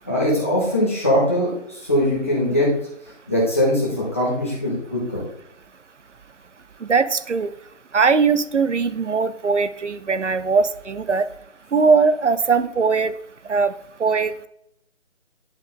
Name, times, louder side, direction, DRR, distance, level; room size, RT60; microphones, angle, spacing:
voice 1, 0.0-2.7 3.3-5.2, left 1 dB, 10° left, -7 dB, 0.9 m, -21 dB
voice 2, 6.8-7.5 7.9-11.3 11.7-13.1 13.5-13.7 14.0-14.3, right 5 dB, 70° right, 13 dB, 0.6 m, -20 dB
10.5 x 3.6 x 3.9 m, 0.75 s
figure-of-eight pair, 160°, 37 cm